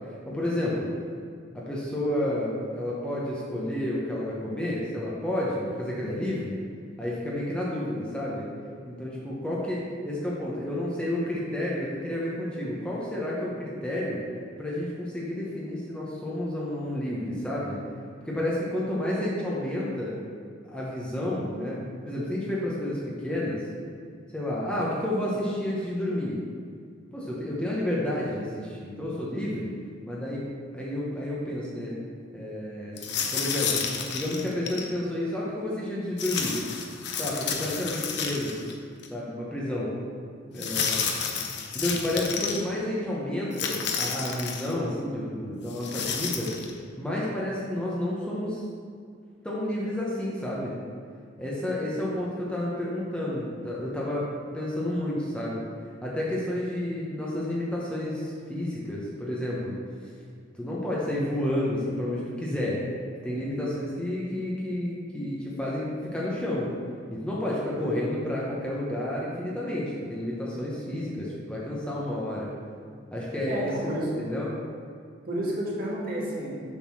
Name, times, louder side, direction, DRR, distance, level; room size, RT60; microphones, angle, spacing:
voice 1, 0.3-0.9 1.5-6.6 7.0-8.5 8.9-14.2 14.6-17.8 18.2-20.2 20.7-21.8 22.0-23.6 24.3-26.4 27.1-29.7 30.0-32.0 32.3-33.0 33.3-33.8 34.1-36.6 37.2-38.6 39.1-39.9 40.5-41.1 41.7-46.5 47.0-48.6 49.4-50.7 51.4-54.3 54.5-55.6 56.0-59.8 60.5-62.8 63.2-66.7 67.1-72.5 73.1-73.9 74.2-74.5, left 1 dB, 5° left, -6 dB, 1.0 m, -30 dB
sound 1, 33.0-34.9 36.2-38.7 39.0-39.1 40.6-42.6 43.5-44.7 45.7-46.7, left 6 dB, 60° left, 0.7 m, -31 dB
voice 2, 73.5-74.1 75.3-76.6, right 1 dB, 50° right, -5 dB, 1.8 m, -30 dB
7.3 x 3.9 x 6.2 m, 2.2 s
head